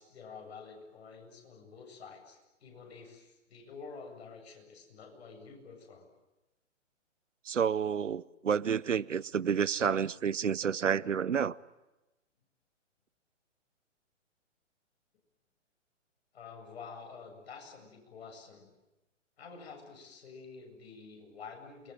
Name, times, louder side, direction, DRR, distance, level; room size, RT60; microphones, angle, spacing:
voice 1, 0.0-6.1 16.3-18.7 19.4-21.9, left 5 dB, 55° left, 3 dB, 8.0 m, -49 dB
voice 2, 7.5-11.6, right 7 dB, 75° right, 20 dB, 0.9 m, -30 dB
28.0 x 21.5 x 9.2 m, 1.0 s
figure-of-eight pair, 125°, 37 cm